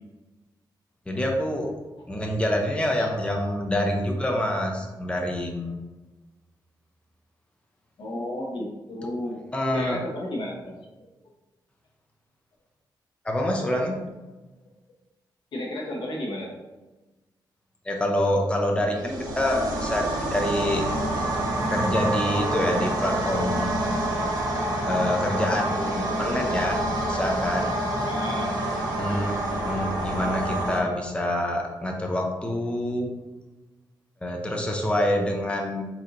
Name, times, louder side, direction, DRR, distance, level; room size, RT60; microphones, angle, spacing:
voice 1, 1.1-1.7 2.1-5.7 9.5-10.0 13.2-14.0 17.9-20.0 20.3-20.9 21.7-23.7 24.9-26.8 27.1-27.7 29.0-29.3 29.7-33.1 34.2-35.8, left 1 dB, 15° left, 1 dB, 0.7 m, -26 dB
voice 2, 8.0-9.4 9.7-10.7 15.5-16.6 28.1-28.6 29.1-29.3, left 1 dB, 80° left, -2 dB, 1.1 m, -32 dB
sound 1, 18.9-30.8, right 1 dB, 50° right, 1.3 m, -27 dB
4.3 x 4.2 x 2.6 m, 1.1 s
cardioid pair, 95°, 8 cm